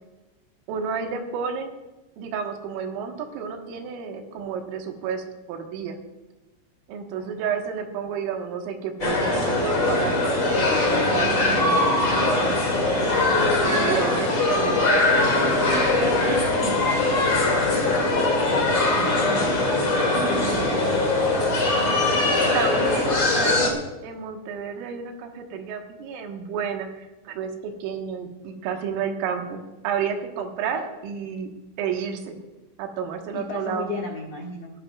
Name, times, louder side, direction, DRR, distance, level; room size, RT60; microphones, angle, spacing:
voice 1, 0.7-1.7 2.2-6.0 6.9-12.1 12.3-12.5 13.5-15.1 16.0-16.8 20.1-20.8 22.5-31.5 31.8-32.4 32.8-33.9, right 7 dB, 80° right, 3 dB, 3.9 m, -31 dB
sound 1, 9.0-23.7, left 2 dB, 40° left, 1.7 m, -21 dB
voice 2, 16.6-17.1 17.5-21.0 30.7-30.8 33.3-34.7, left 3 dB, 75° left, -2 dB, 1.5 m, -35 dB
21.5 x 12.0 x 2.4 m, 1.1 s
omnidirectional pair, 5.8 m